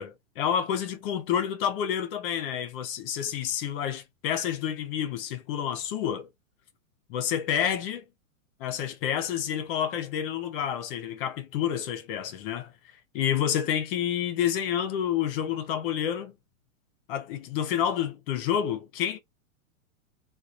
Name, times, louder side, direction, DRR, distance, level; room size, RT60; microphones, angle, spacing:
voice 1, 0.0-6.3 7.1-8.0 8.6-12.7 13.1-16.3 17.1-19.2, left 9 dB, 40° left, 0.8 m, -29 dB
3.8 x 2.3 x 2.9 m
hypercardioid pair, 150°, 42 cm